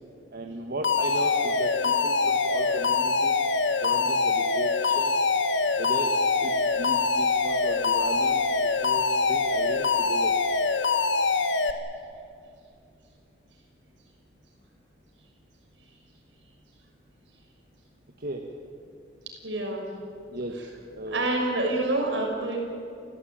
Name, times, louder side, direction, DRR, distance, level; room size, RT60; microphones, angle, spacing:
voice 1, 0.3-3.4 3.8-5.1 5.8-10.3 18.2-18.4 20.3-20.6 21.0-21.3, right 1 dB, 60° right, 2 dB, 1.8 m, -36 dB
Alarm, 0.8-11.7, left 4 dB, 85° left, 1.6 m, -24 dB
voice 2, 19.4-19.9 21.1-22.6, right 2 dB, 80° right, 1 dB, 6.0 m, -27 dB
30.0 x 15.5 x 9.1 m, 2.4 s
head